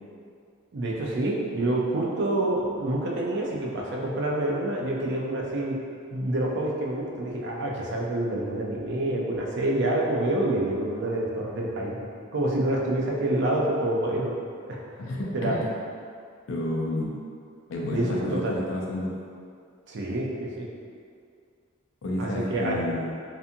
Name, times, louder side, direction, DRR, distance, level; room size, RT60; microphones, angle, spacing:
voice 1, 0.7-5.8 6.1-12.1 12.3-14.3 14.7-14.8 15.3-15.5 17.9-18.5 19.9-20.7 22.2-22.8, right 1 dB, 55° right, -2 dB, 0.4 m, -27 dB
voice 2, 15.0-15.7 16.5-17.2 17.7-19.1 22.0-23.1, left 1 dB, 65° left, -3 dB, 0.4 m, -30 dB
2.7 x 2.4 x 2.5 m, 2.2 s
head